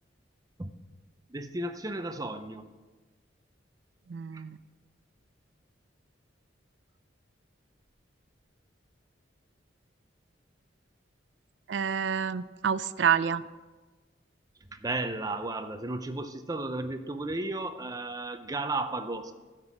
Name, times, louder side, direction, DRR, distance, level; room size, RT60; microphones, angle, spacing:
voice 1, 1.3-2.7 4.3-4.4 14.7-19.3, right 2 dB, 20° right, 8 dB, 0.6 m, -34 dB
voice 2, 4.1-4.6 11.7-13.4, right 7 dB, 65° right, 15 dB, 0.4 m, -28 dB
12.5 x 6.0 x 5.9 m, 1.3 s
head